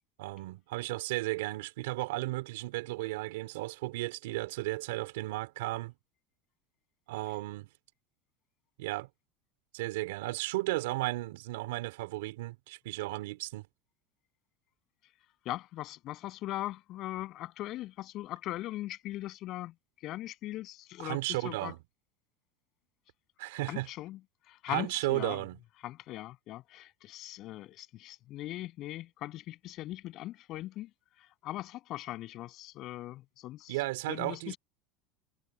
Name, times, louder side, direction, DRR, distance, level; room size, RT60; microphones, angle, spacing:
voice 1, 0.2-5.9 7.1-7.7 8.8-9.1 9.7-13.7 21.0-21.8 23.4-23.9 24.7-25.6 33.7-34.5, right 19 dB, 85° right, 4.2 m, -34 dB
voice 2, 15.4-19.7 20.0-21.7 23.7-24.2 24.4-25.4 25.8-30.9 31.2-33.8 34.1-34.6, left 15 dB, 40° left, 7.7 m, -40 dB
supercardioid pair, 160°, 0 cm